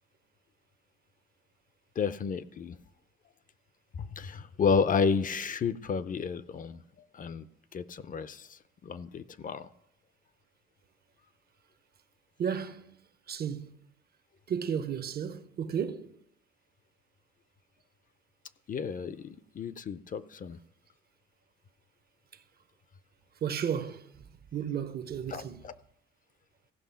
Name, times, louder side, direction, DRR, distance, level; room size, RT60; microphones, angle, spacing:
voice 1, 2.0-2.8 4.0-6.8 7.1-7.5 7.7-9.7 18.7-20.6 25.3-25.7, left 5 dB, 45° left, 0.6 m, -31 dB
voice 2, 12.4-13.0 13.3-13.7 14.5-16.1 22.3-22.4 23.4-24.2 24.5-25.6, right 8 dB, 50° right, 0.8 m, -33 dB
15.0 x 5.4 x 5.6 m
cardioid pair, 90°, 20 cm